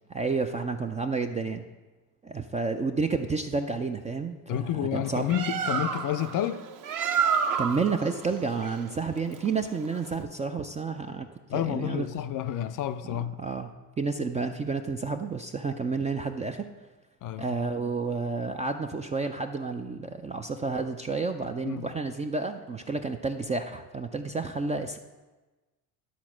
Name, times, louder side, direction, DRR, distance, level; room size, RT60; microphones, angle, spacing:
voice 1, 0.1-1.6 2.2-5.2 7.6-12.2 13.0-13.7 14.0-16.7 17.4-25.0, right 4 dB, 15° right, 5 dB, 0.3 m, -30 dB
voice 2, 4.5-6.6 11.5-13.3 17.2-17.5 21.6-21.9, left 11 dB, 40° left, 11 dB, 0.5 m, -30 dB
Bird, 5.0-10.2, right 6 dB, 40° right, 0.8 m, -30 dB
12.0 x 4.2 x 6.1 m, 1.2 s
hypercardioid pair, 70°, 49 cm